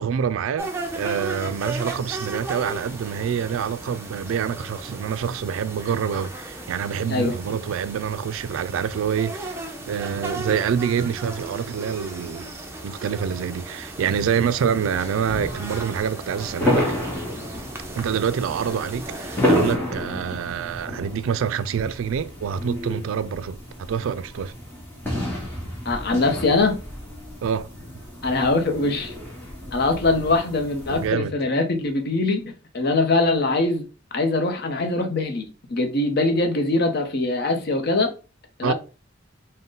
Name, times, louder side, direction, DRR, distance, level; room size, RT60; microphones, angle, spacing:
voice 1, 0.0-9.6 9.9-12.5 12.8-16.9 17.9-23.6 23.9-24.5 27.4-27.7 30.9-31.3 38.6-38.7, right 7 dB, 75° right, 0.3 m, -26 dB
sound 1, 0.6-19.7, right 2 dB, 10° right, 0.6 m, -36 dB
sound 2, 14.9-31.1, left 1 dB, 10° left, 1.0 m, -30 dB
voice 2, 25.8-26.8 28.2-29.1 29.7-32.4 32.7-33.8 34.1-38.1 38.6-38.7, left 2 dB, 50° left, 0.7 m, -22 dB
3.8 x 2.1 x 3.8 m
head